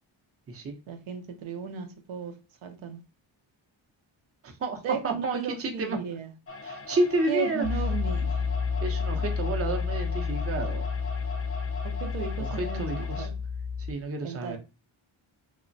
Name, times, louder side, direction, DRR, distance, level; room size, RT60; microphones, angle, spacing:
voice 1, 0.9-2.3 2.6-3.0 4.8-6.3 7.3-8.5 11.8-13.3 14.2-14.6, right 6 dB, 90° right, 0.6 m, -35 dB
voice 2, 4.4-6.0 6.6-7.7 8.8-10.9 12.4-13.3 13.9-14.6, right 2 dB, 30° right, 0.5 m, -30 dB
sound 1, 6.5-13.3, left 3 dB, 30° left, 0.4 m, -41 dB
Piano, 7.6-13.9, left 5 dB, 90° left, 0.6 m, -30 dB
3.0 x 2.1 x 2.5 m
wide cardioid pair, 110°, 48 cm